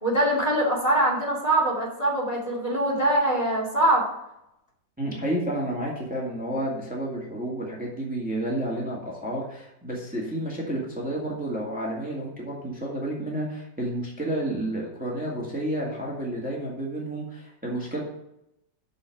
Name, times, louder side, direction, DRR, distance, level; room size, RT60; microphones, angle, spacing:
voice 1, 0.0-4.1, right 1 dB, 20° left, -3 dB, 2.5 m, -23 dB
voice 2, 5.0-18.0, right 1 dB, 5° right, -4 dB, 2.0 m, -30 dB
8.0 x 6.4 x 6.6 m, 0.82 s
omnidirectional pair, 1.9 m